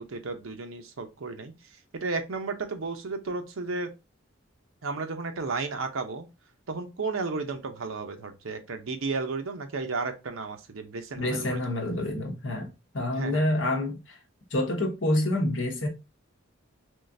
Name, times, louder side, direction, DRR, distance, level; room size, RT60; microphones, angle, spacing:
voice 1, 0.0-1.5 1.9-3.9 4.8-6.3 6.7-11.6 13.1-13.5, right 3 dB, 80° right, 0.7 m, -33 dB
voice 2, 11.2-14.2 14.5-15.9, left 1 dB, 70° left, 1.0 m, -27 dB
3.6 x 3.1 x 2.6 m
head